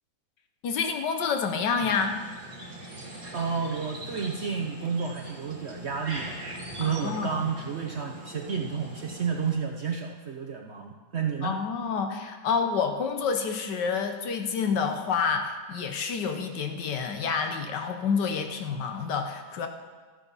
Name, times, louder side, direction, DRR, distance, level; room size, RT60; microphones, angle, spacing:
voice 1, 0.6-2.2 6.8-7.4 11.4-19.7, left 5 dB, 75° left, 5 dB, 1.6 m, -28 dB
sound 1, 1.8-9.5, right 1 dB, 75° right, 3.2 m, -42 dB
voice 2, 3.3-6.4 6.8-11.6, right 6 dB, 55° right, 2 dB, 0.8 m, -31 dB
13.0 x 9.0 x 5.5 m, 1.4 s
omnidirectional pair, 1.9 m